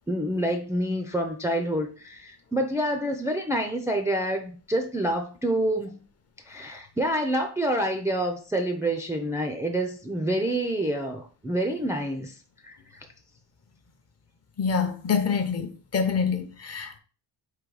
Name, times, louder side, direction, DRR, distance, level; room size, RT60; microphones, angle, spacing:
voice 1, 0.1-6.0 6.5-12.3 12.6-13.1, right 1 dB, 5° right, 0.4 m, -27 dB
voice 2, 14.6-17.0, left 6 dB, 35° left, 0.7 m, -26 dB
3.8 x 2.7 x 4.7 m
cardioid pair, 130°, 43 cm